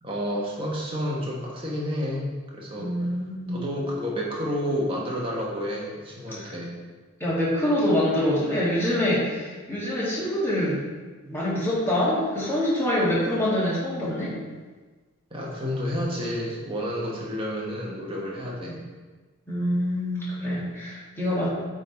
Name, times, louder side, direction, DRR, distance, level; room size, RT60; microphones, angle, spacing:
voice 1, 0.0-2.9 3.5-6.7 15.3-18.8, equal, 25° right, -4 dB, 1.3 m, -30 dB
voice 2, 2.8-3.6 6.3-6.5 7.2-10.8 11.2-14.3 18.6-18.8 19.5-21.5, left 1 dB, 10° left, -8 dB, 2.0 m, -25 dB
9.1 x 3.6 x 4.0 m, 1.3 s
head